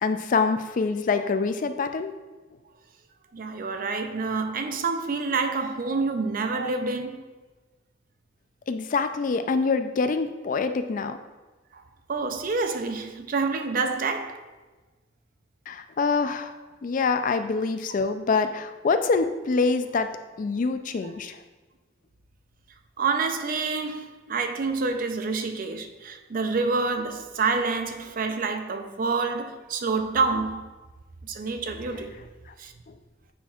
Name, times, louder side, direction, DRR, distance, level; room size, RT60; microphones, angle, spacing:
voice 1, 0.0-2.1 8.7-11.2 15.7-16.5 16.8-20.1 20.4-21.4, left 4 dB, 45° left, 0.3 m, -25 dB
voice 2, 3.3-7.3 11.7-11.8 12.1-14.4 23.0-30.7 31.2-32.1 32.6-32.7, right 4 dB, 45° right, 0.5 m, -27 dB
9.3 x 4.3 x 2.4 m
head